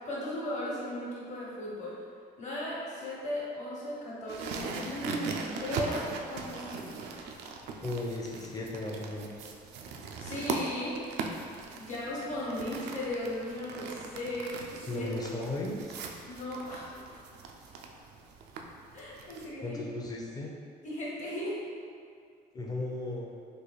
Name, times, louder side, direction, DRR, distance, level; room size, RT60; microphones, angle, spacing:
voice 1, 0.0-1.9 2.4-7.0 10.2-11.0 11.8-15.1 16.3-17.2 18.9-19.8 20.8-21.6, left 1 dB, 45° left, -6 dB, 1.2 m, -37 dB
sound 1, 4.3-19.5, right 4 dB, 80° right, 0.4 m, -40 dB
voice 2, 7.8-9.5 14.9-16.0 19.6-20.5 22.5-23.4, left 2 dB, 25° left, -1 dB, 0.6 m, -36 dB
3.3 x 2.4 x 4.0 m, 2.3 s
cardioid pair, 110°, 17 cm